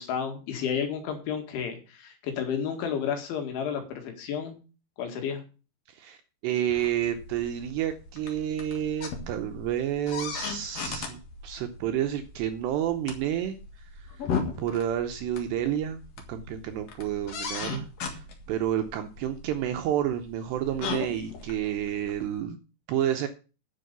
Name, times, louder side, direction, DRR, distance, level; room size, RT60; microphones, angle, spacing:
voice 1, 0.0-4.6 5.0-5.4, left 7 dB, 75° left, 5 dB, 4.3 m, -31 dB
voice 2, 5.9-6.2 6.4-14.3 14.6-22.6 22.9-23.3, right 10 dB, 75° right, 7 dB, 2.6 m, -30 dB
sound 1, 6.7-22.4, left 5 dB, 55° left, 1.8 m, -38 dB
10.5 x 6.7 x 6.8 m, 0.33 s
omnidirectional pair, 5.6 m